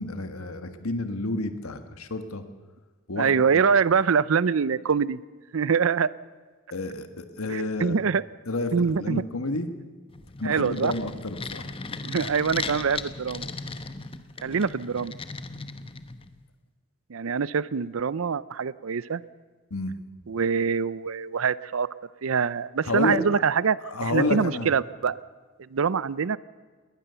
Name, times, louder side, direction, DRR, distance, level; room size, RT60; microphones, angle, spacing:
voice 1, 0.0-2.4 3.1-3.6 6.7-8.0 8.5-9.7 10.4-11.7 19.7-19.9 22.8-23.4 23.8-24.7, left 2 dB, 90° left, 9 dB, 1.6 m, -30 dB
voice 2, 3.2-5.2 5.5-6.1 7.5-8.2 8.7-9.2 10.4-10.9 12.0-13.5 14.4-15.1 17.1-19.2 20.3-21.9 22.2-25.2 25.7-26.4, right 6 dB, 75° right, 19 dB, 0.5 m, -24 dB
sound 1, 10.1-16.4, left 4 dB, 25° left, 0.9 m, -37 dB
21.5 x 19.0 x 6.9 m, 1.4 s
head